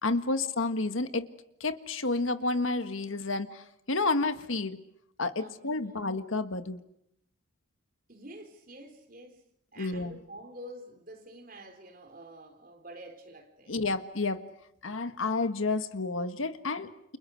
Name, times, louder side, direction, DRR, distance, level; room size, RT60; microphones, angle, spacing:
voice 1, 0.0-1.3 1.6-4.8 5.2-6.8 9.8-10.2 13.7-14.4 14.8-17.2, left 3 dB, 80° left, 1.7 m, -30 dB
voice 2, 5.4-6.0 8.1-9.4 9.7-13.8, right 1 dB, 45° right, 4.1 m, -48 dB
29.5 x 29.5 x 6.5 m
head